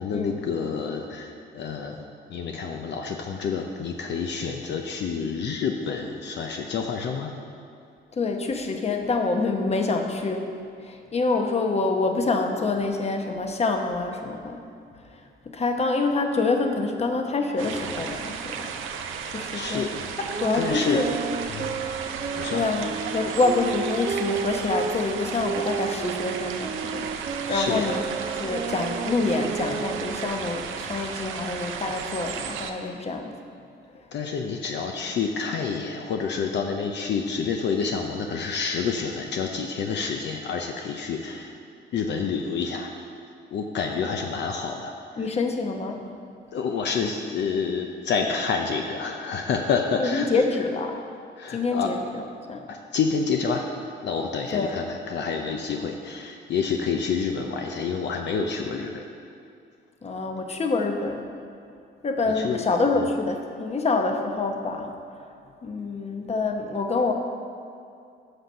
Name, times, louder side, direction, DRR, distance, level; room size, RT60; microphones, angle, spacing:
voice 1, 0.0-2.0 2.3-7.3 19.4-19.9 20.5-21.0 21.5-21.7 22.4-22.6 27.4-28.0 34.1-41.5 41.9-42.9 43.5-44.9 46.5-50.4 51.4-51.9 52.7-53.7 54.0-59.0 62.3-62.6, left 5 dB, 65° left, 3 dB, 0.6 m, -28 dB
voice 2, 8.1-10.5 10.8-14.6 15.5-18.7 19.3-19.9 20.2-21.1 22.5-28.0 28.3-33.3 45.2-46.0 50.0-51.0 51.5-52.2 52.5-52.6 54.5-54.8 60.0-61.3 62.0-65.3 65.6-67.1, left 3 dB, 30° left, 4 dB, 0.9 m, -26 dB
sound 1, 17.6-32.7, right 7 dB, 90° right, 0.6 m, -34 dB
sound 2, 20.3-25.0 25.4-30.4, right 6 dB, 35° right, 0.4 m, -32 dB
7.9 x 6.0 x 5.5 m, 2.5 s
cardioid pair, 90°, 20 cm